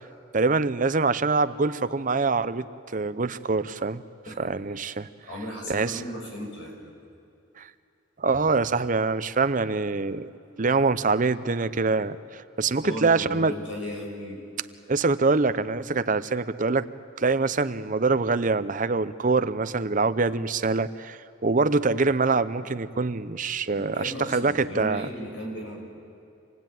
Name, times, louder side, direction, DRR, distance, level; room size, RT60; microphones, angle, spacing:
voice 1, 0.3-4.0 4.4-5.1 5.7-6.0 7.6-7.7 8.2-10.3 10.6-13.6 14.9-16.9 17.2-25.1, right 4 dB, 45° right, 13 dB, 0.7 m, -24 dB
voice 2, 5.2-6.8 8.3-8.4 12.6-14.4 23.7-25.8, equal, 80° left, 0 dB, 6.2 m, -36 dB
27.0 x 18.5 x 9.2 m, 2.6 s
head